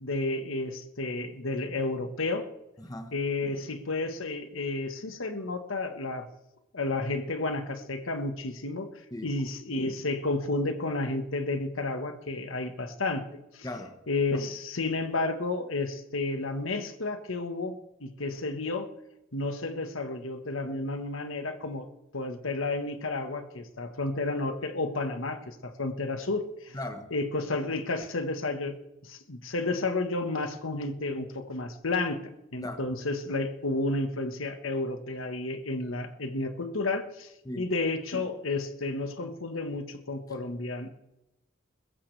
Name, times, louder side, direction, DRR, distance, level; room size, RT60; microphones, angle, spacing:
voice 1, 0.0-2.5 3.1-6.3 6.7-8.9 9.2-13.7 14.1-18.9 19.3-21.9 22.1-26.8 27.1-28.7 29.0-32.2 32.5-37.3 37.6-40.9, left 2 dB, 80° left, 1.4 m, -31 dB
voice 2, 2.8-3.1 9.1-9.3 13.6-14.0 26.7-27.1 32.6-32.9 37.4-37.7, left 1 dB, 20° left, 1.2 m, -37 dB
22.0 x 14.5 x 3.4 m
head